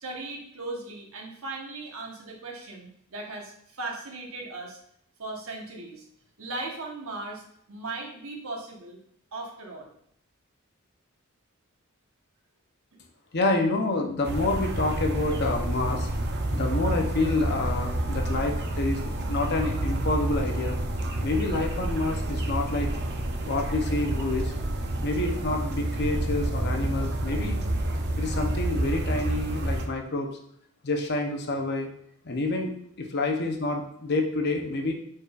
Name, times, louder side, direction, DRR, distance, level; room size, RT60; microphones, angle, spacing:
voice 1, 0.0-4.8 5.2-6.0 6.4-9.0 9.3-9.9, right 2 dB, 70° right, 0 dB, 1.1 m, -38 dB
voice 2, 13.3-16.1 16.5-20.8 21.2-22.9 23.4-24.5 25.0-27.6 28.2-30.3 30.8-31.9 32.2-34.9, left 2 dB, 50° left, 2 dB, 0.7 m, -28 dB
sound 1, 14.2-29.9, right 1 dB, 50° right, 0.6 m, -29 dB
4.8 x 4.6 x 2.4 m, 0.68 s
head